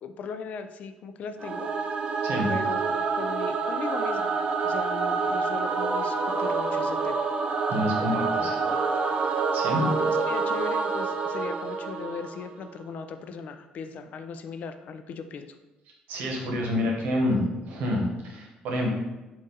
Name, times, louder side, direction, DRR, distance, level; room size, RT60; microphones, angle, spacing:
voice 1, 0.0-1.7 2.1-2.2 2.5-7.3 8.0-8.9 9.1-9.5 9.7-15.6, left 5 dB, 55° left, 9 dB, 0.3 m, -38 dB
Singing / Musical instrument, 1.4-12.7, right 4 dB, 35° right, 0.4 m, -27 dB
voice 2, 7.7-8.5 9.5-9.8 16.1-18.9, left 1 dB, 80° right, 0 dB, 1.0 m, -27 dB
4.0 x 2.5 x 3.8 m, 1.1 s
cardioid pair, 115°, 3 cm